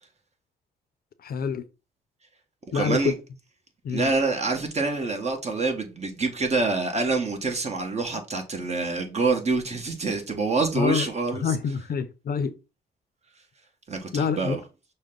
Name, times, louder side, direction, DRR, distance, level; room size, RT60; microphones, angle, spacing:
voice 1, 1.2-1.7 2.7-3.1 3.8-4.1 10.7-11.1 11.4-12.5 14.1-14.6, left 6 dB, 55° left, 0.6 m, -26 dB
voice 2, 2.7-3.1 3.9-11.5 13.9-14.6, right 3 dB, 40° right, 1.3 m, -26 dB
6.2 x 2.2 x 3.7 m
cardioid pair, 70°, 18 cm